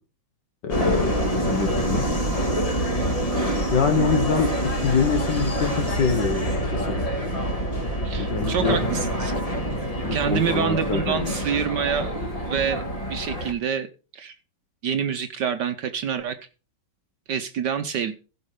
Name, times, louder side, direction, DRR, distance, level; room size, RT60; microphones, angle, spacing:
voice 1, 0.6-1.1 1.5-2.1 3.7-7.0 8.2-8.8 10.0-11.4, left 5 dB, 65° left, 6 dB, 1.9 m, -25 dB
Subway metro underground, 0.7-13.5, equal, 20° left, 1.7 m, -26 dB
voice 2, 8.0-9.3 10.1-12.1 12.4-12.8 13.1-13.9 14.1-14.3 14.8-16.4 17.3-18.1, right 8 dB, 65° right, 8 dB, 1.3 m, -26 dB
15.5 x 5.6 x 4.9 m, 0.34 s
omnidirectional pair, 2.1 m